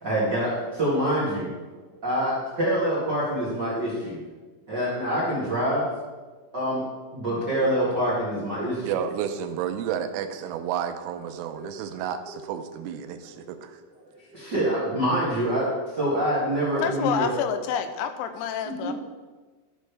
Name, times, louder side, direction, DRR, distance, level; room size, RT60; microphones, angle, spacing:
voice 1, 0.0-1.5 1.9-4.2 4.7-5.9 6.5-6.8 7.1-9.0 11.5-11.6 11.9-12.4 14.3-17.3 18.6-18.9, right 1 dB, 50° right, -9 dB, 1.2 m, -26 dB
voice 2, 8.8-13.8, right 9 dB, 85° right, 8 dB, 3.2 m, -31 dB
voice 3, 16.8-18.9, left 8 dB, 80° left, 9 dB, 3.0 m, -28 dB
13.5 x 6.5 x 3.4 m, 1.3 s
omnidirectional pair, 5.8 m